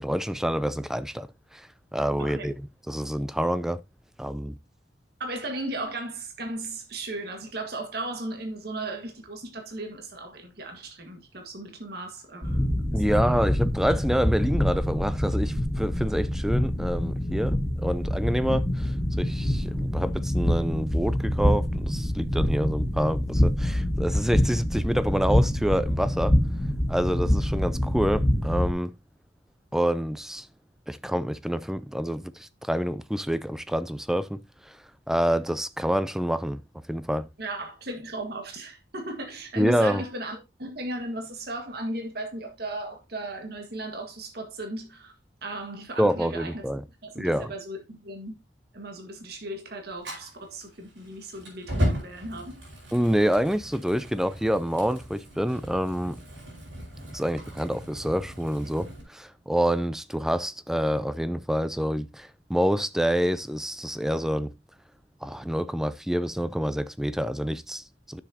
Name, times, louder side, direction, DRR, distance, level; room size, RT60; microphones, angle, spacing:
voice 1, 0.0-3.8 4.2-4.6 12.9-26.4 26.9-28.9 29.7-30.5 30.9-34.8 35.1-36.6 36.9-37.3 39.6-40.0 46.0-46.8 47.2-47.5 52.9-56.2 57.1-64.5 65.2-68.2, equal, 5° right, 0.4 m, -27 dB
voice 2, 2.2-2.5 5.2-13.4 37.4-45.1 45.4-46.7 47.0-48.3 48.7-52.6, right 2 dB, 55° right, 1.7 m, -36 dB
sound 1, 12.4-28.7, left 1 dB, 15° left, 2.0 m, -25 dB
Fire, 50.0-59.0, equal, 85° right, 4.7 m, -36 dB
10.0 x 6.9 x 2.8 m
head